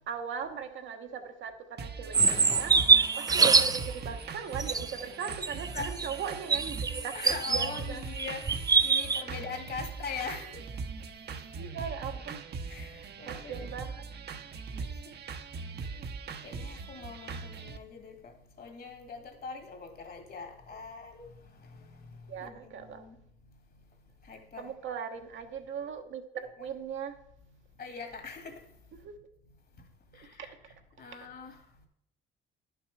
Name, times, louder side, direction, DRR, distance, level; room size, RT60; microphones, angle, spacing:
voice 1, 0.1-8.1 11.6-12.4 13.3-14.0 22.3-23.1 24.6-27.2 29.0-29.2 30.2-30.5, right 7 dB, 75° right, 1.2 m, -39 dB
sound 1, 1.8-17.8, right 4 dB, 55° right, 0.9 m, -41 dB
sound 2, 2.1-3.9 4.6-7.8 8.2-9.2, right 4 dB, 20° right, 0.4 m, -25 dB
voice 2, 6.9-10.5 12.7-13.7 14.8-14.9 16.4-18.1 18.6-21.3 22.4-23.2 24.3-24.7 26.6-26.7 27.8-28.6 30.2-30.5 31.0-31.6, left 5 dB, 50° left, 2.0 m, -42 dB
10.5 x 6.0 x 4.8 m
cardioid pair, 90°, 20 cm